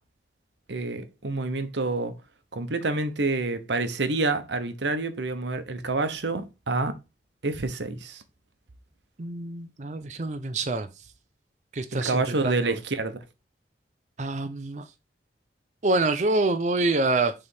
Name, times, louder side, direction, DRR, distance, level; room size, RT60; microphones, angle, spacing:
voice 1, 0.7-2.1 2.5-6.9 7.4-8.2 11.9-13.2, right 3 dB, 85° right, 1.0 m, -28 dB
voice 2, 9.2-10.9 11.7-12.7 14.2-14.8 15.8-17.3, right 2 dB, 40° right, 0.6 m, -26 dB
6.8 x 3.4 x 5.4 m
head